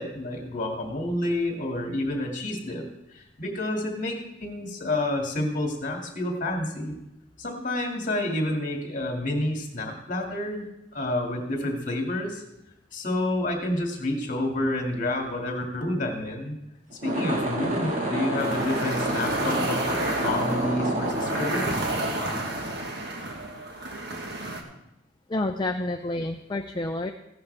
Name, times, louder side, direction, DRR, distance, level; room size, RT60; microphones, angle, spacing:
voice 1, 0.0-6.9 7.4-12.4 12.9-16.6 16.9-21.9, left 1 dB, 40° left, 1 dB, 2.3 m, -29 dB
sound 1, 16.9-23.4, right 1 dB, 40° right, 1.8 m, -29 dB
sound 2, 18.4-24.6, right 2 dB, 55° right, 1.5 m, -32 dB
voice 2, 25.3-27.1, left 2 dB, 25° left, 4 dB, 0.5 m, -29 dB
15.5 x 11.0 x 3.4 m, 0.86 s
head